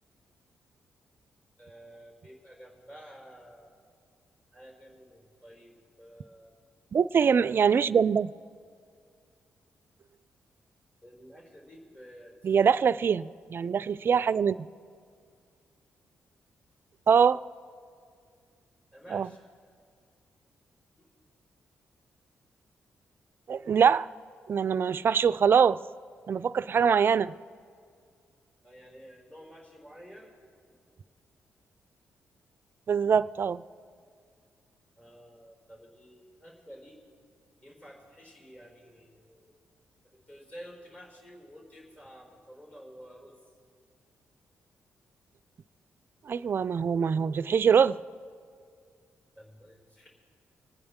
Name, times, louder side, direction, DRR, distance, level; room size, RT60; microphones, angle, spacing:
voice 1, 1.6-3.8 4.5-6.5 11.0-12.7 18.9-19.4 21.0-21.1 28.6-30.3 35.0-37.0 37.6-39.5 40.0-43.4 49.4-50.1, equal, 25° left, 0 dB, 4.3 m, -51 dB
voice 2, 6.9-8.3 12.4-14.7 17.1-17.4 19.1-19.3 23.5-24.1 24.5-25.8 26.3-27.3 32.9-33.6 46.3-48.0, right 7 dB, 50° right, 17 dB, 0.4 m, -23 dB
26.5 x 9.6 x 3.6 m, 2.2 s
cardioid pair, 65°, 5 cm